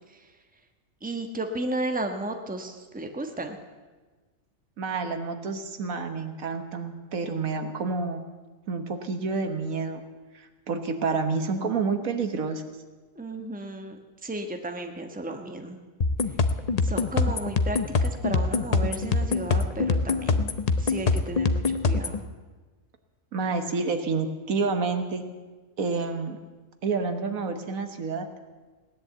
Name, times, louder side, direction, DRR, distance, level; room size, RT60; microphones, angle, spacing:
voice 1, 1.0-3.6 13.1-15.8 16.8-20.5 20.8-22.2, right 1 dB, 5° right, 5 dB, 1.1 m, -34 dB
voice 2, 4.8-8.2 8.7-10.0 10.3-12.6 23.3-25.2 25.8-26.4 26.8-28.3, right 4 dB, 75° right, 8 dB, 1.6 m, -29 dB
sound 1, 16.0-22.2, left 4 dB, 40° left, 0.6 m, -24 dB
17.0 x 10.5 x 8.0 m, 1.3 s
omnidirectional pair, 1.5 m